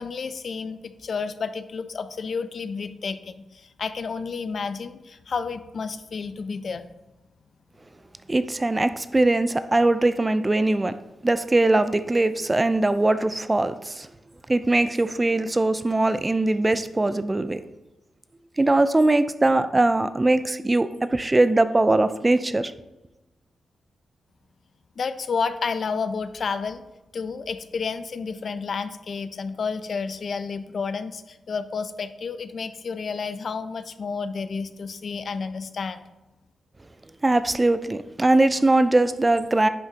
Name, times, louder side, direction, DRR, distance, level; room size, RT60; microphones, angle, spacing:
voice 1, 0.0-6.9 25.0-26.8 27.1-36.0, left 5 dB, 50° left, 12 dB, 0.4 m, -31 dB
voice 2, 8.3-11.0 11.2-14.1 14.5-17.6 18.6-22.7 37.2-39.7, right 2 dB, 15° right, 12 dB, 0.3 m, -21 dB
10.5 x 6.0 x 2.8 m, 1.0 s
wide cardioid pair, 145°, 0 cm